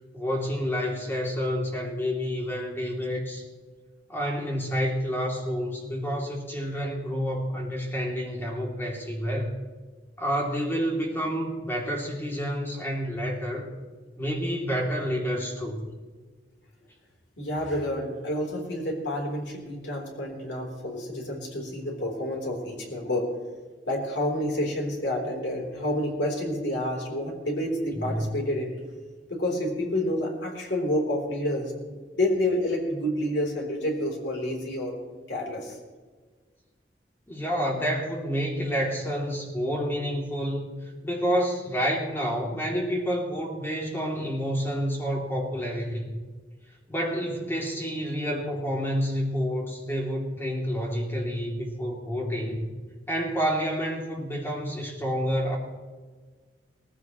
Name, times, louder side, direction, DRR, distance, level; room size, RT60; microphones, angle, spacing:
voice 1, 0.1-3.4 4.1-9.6 10.2-13.7 14.2-15.8 27.9-28.3 37.3-40.7 41.0-46.1 46.9-52.7 53.1-55.6, equal, 15° left, -1 dB, 2.8 m, -29 dB
voice 2, 17.4-23.3 23.9-28.7 29.3-35.0 35.3-35.8, left 1 dB, 80° left, 0 dB, 3.7 m, -29 dB
19.0 x 15.0 x 3.1 m, 1.4 s
head